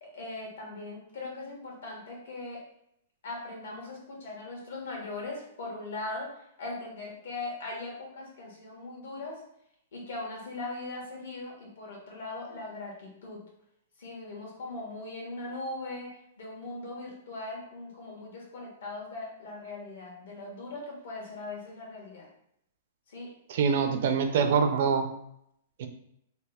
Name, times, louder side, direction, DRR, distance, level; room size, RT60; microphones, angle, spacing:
voice 1, 0.0-2.6 3.2-9.4 9.9-13.4 14.0-16.1 16.4-22.3 23.1-23.3, left 2 dB, 80° left, -2 dB, 1.5 m, -40 dB
voice 2, 23.5-25.1 25.8-25.9, right 6 dB, 60° right, 7 dB, 0.4 m, -25 dB
3.3 x 2.4 x 3.4 m, 0.74 s
hypercardioid pair, 160°, 0 cm